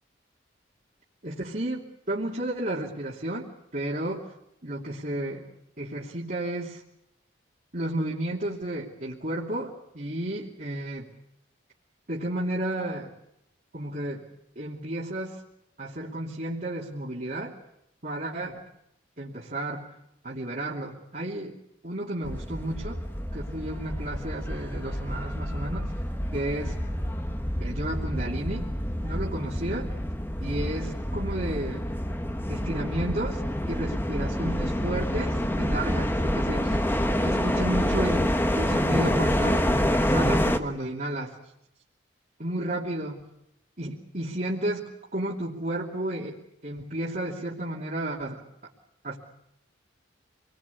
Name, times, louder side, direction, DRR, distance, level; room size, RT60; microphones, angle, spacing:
voice 1, 1.2-4.3 4.6-5.4 5.8-6.8 7.7-11.1 12.1-13.1 13.7-14.3 14.6-15.4 15.8-17.5 18.0-18.5 19.2-19.9 20.2-21.6 21.8-23.0 23.3-25.9 26.3-26.8 27.6-28.7 29.0-29.9 30.4-31.8 32.5-33.4 33.7-36.8 37.2-38.3 38.6-41.3 42.4-43.2 43.8-46.4 46.6-48.4 49.0-49.2, right 1 dB, 45° right, -5 dB, 2.9 m, -32 dB
sound 1, 22.2-40.6, equal, 10° left, 1.4 m, -27 dB
27.5 x 21.0 x 8.4 m, 0.82 s
head